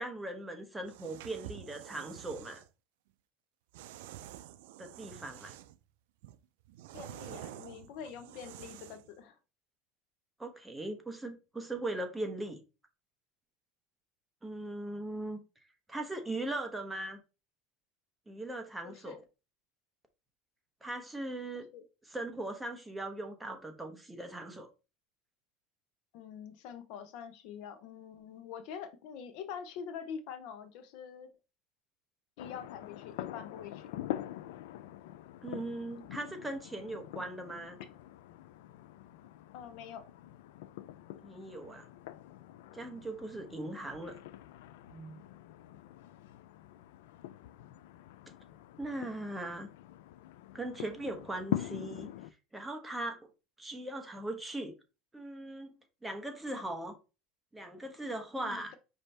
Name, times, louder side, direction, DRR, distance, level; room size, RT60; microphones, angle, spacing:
voice 1, 0.0-2.6 4.8-5.6 10.4-12.6 14.4-15.4 15.9-17.2 18.3-19.2 20.8-21.7 22.1-24.7 35.4-37.8 41.2-41.9 42.7-44.2 44.9-45.2 48.8-49.7 50.5-52.1 52.5-53.2 53.6-54.7 55.1-55.7 56.0-56.9 57.5-58.7, right 2 dB, 10° right, 0.8 m, -39 dB
sound 1, 0.8-2.7 3.7-5.8 6.2-9.1, right 12 dB, 90° right, 0.3 m, -49 dB
voice 2, 6.9-9.4 18.8-19.2 21.7-21.8 26.1-31.3 32.4-33.9 39.5-40.0 58.4-58.8, left 7 dB, 65° left, 0.7 m, -45 dB
sound 2, 32.4-52.3, left 13 dB, 90° left, 0.3 m, -44 dB
5.2 x 2.7 x 3.3 m
supercardioid pair, 140°, 0 cm